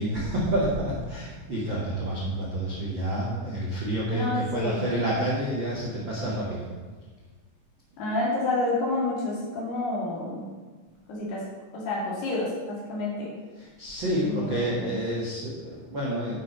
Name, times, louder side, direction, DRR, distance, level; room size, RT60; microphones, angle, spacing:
voice 1, 0.0-6.7 13.8-16.3, right 1 dB, 60° right, -6 dB, 1.2 m, -29 dB
voice 2, 4.1-4.8 8.0-10.4 11.1-11.4 11.7-13.3 14.2-14.9, left 2 dB, 65° left, -5 dB, 4.7 m, -29 dB
11.0 x 6.5 x 5.5 m, 1.4 s
omnidirectional pair, 5.2 m